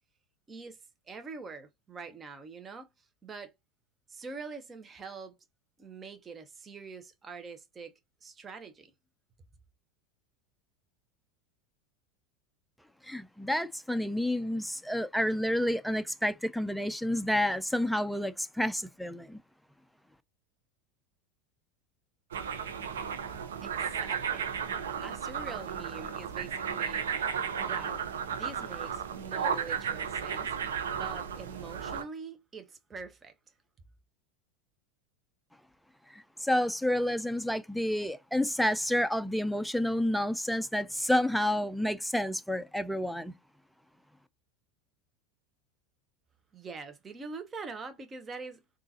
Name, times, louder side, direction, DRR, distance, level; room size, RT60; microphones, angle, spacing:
voice 1, 1.1-2.9 3.2-3.5 4.1-5.4 5.8-7.9 8.2-8.9 23.6-24.5 25.0-27.1 27.6-28.0 28.3-30.6 30.9-33.3 46.5-48.6, right 4 dB, 25° right, 0.8 m, -44 dB
voice 2, 13.0-19.4 36.1-43.3, left 1 dB, ahead, 0.4 m, -29 dB
sound 1, 22.3-32.0, right 7 dB, 85° right, 0.6 m, -34 dB
3.7 x 2.4 x 2.8 m
hypercardioid pair, 95°, 0 cm